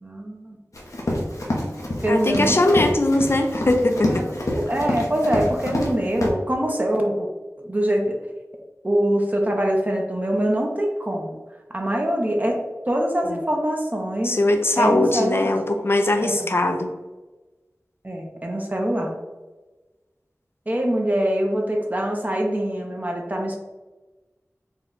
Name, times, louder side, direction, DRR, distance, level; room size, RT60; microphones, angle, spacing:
voice 1, 0.0-0.6 2.0-2.8 4.0-4.1 4.5-7.3 7.6-8.2 8.8-11.4 11.7-12.6 12.9-14.3 14.8-15.6 16.2-16.5 18.0-19.1 20.7-23.6, right 1 dB, 30° right, 1 dB, 0.6 m, -24 dB
Run, 0.7-5.9 6.2-6.3, left 1 dB, 75° left, 0.8 m, -27 dB
voice 2, 2.1-4.2 13.3-13.4 14.2-16.9, left 2 dB, 45° left, 5 dB, 0.5 m, -20 dB
4.4 x 2.3 x 3.8 m, 1.2 s
wide cardioid pair, 50°, 5 cm